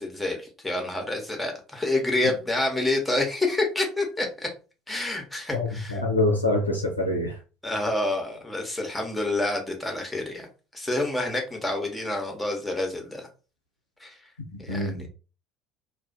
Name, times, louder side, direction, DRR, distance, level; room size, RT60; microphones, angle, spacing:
voice 1, 0.0-4.5 4.9-6.0 7.6-13.3 14.0-14.2 14.6-15.0, left 2 dB, 5° left, 0.8 m, -28 dB
voice 2, 5.5-7.4 14.7-15.1, left 2 dB, 85° left, 0.4 m, -25 dB
2.3 x 2.1 x 2.5 m
figure-of-eight pair, 60°, 0 cm